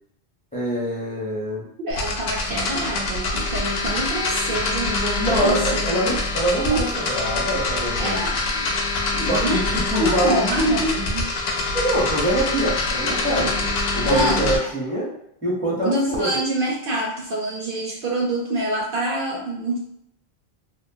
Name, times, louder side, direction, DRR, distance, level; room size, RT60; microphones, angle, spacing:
voice 1, 0.5-1.6 5.2-8.2 9.3-10.5 11.7-15.1 15.4-16.4, right 1 dB, 10° left, -6 dB, 0.7 m, -24 dB
voice 2, 1.8-6.1 6.6-6.9 8.0-8.8 9.1-9.6 9.9-11.4 13.4-13.5 14.0-14.6 15.8-19.8, right 1 dB, 65° right, -2 dB, 0.7 m, -26 dB
sound 1, 1.9-14.6, left 3 dB, 75° left, 0.8 m, -25 dB
2.9 x 2.0 x 2.7 m, 0.75 s
omnidirectional pair, 1.1 m